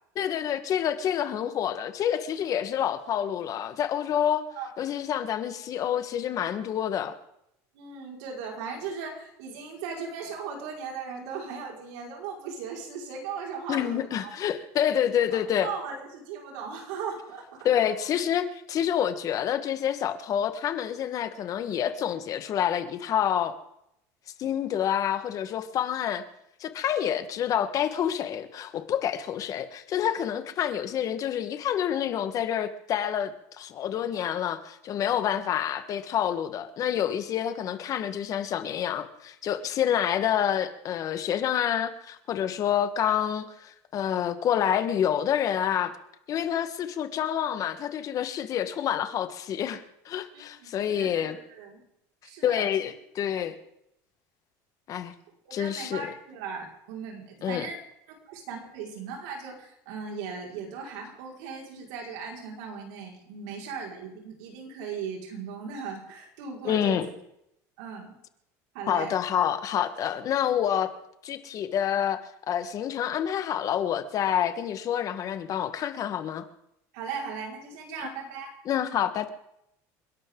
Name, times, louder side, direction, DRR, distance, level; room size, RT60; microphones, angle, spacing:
voice 1, 0.2-4.4 4.8-7.1 13.7-15.7 17.6-23.5 24.4-26.2 26.6-45.9 46.3-51.4 52.4-53.5 54.9-55.1 55.5-56.1 57.4-57.7 66.6-67.1 68.9-70.9 71.2-72.2 72.5-76.4 78.7-79.3, left 9 dB, 40° left, 1.4 m, -28 dB
voice 2, 7.7-14.3 15.3-17.9 50.3-51.8 52.2-52.7 55.4-57.8 58.3-67.1 67.8-68.1 68.7-69.1 76.9-78.5, right 5 dB, 80° right, 5.0 m, -38 dB
29.0 x 12.0 x 3.8 m
supercardioid pair, 130°, 9 cm